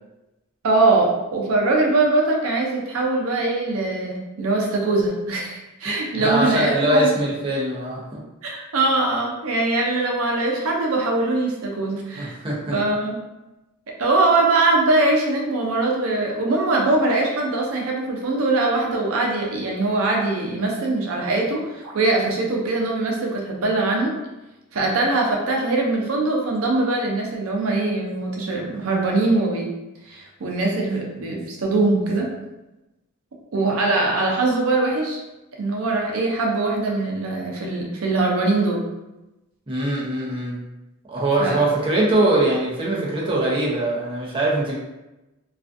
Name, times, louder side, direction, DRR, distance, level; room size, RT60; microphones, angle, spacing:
voice 1, 0.6-7.1 8.4-12.3 12.7-13.2 13.9-24.1 24.7-29.7 30.1-32.3 33.5-35.2 35.6-38.8 41.4-41.6, right 2 dB, 85° right, -1 dB, 0.5 m, -22 dB
voice 2, 6.2-8.2 12.2-12.8 39.7-40.6 41.1-44.7, right 1 dB, 25° right, -5 dB, 0.6 m, -22 dB
2.4 x 2.4 x 2.4 m, 1.0 s
head